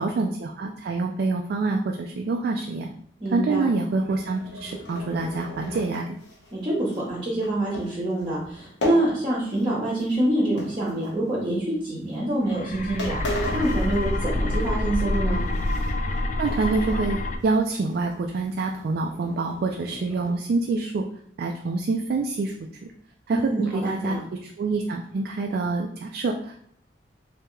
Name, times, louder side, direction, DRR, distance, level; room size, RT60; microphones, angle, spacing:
voice 1, 0.0-2.9 3.3-6.1 16.4-21.0 21.4-22.7 23.3-24.2 24.4-26.6, right 3 dB, 60° right, 2 dB, 0.3 m, -26 dB
voice 2, 3.2-3.7 6.5-15.4 23.3-24.2, right 1 dB, 30° right, -5 dB, 0.8 m, -26 dB
sound 1, 3.6-9.7 10.0-11.5 12.1-12.3 12.7-12.8 13.0-14.7 15.0-16.2 16.5-17.1 17.4-17.5 17.9-20.3, left 1 dB, 85° left, 1.1 m, -37 dB
sound 2, 12.4-17.4, left 1 dB, 45° left, 0.3 m, -27 dB
3.4 x 2.8 x 3.1 m, 0.66 s
head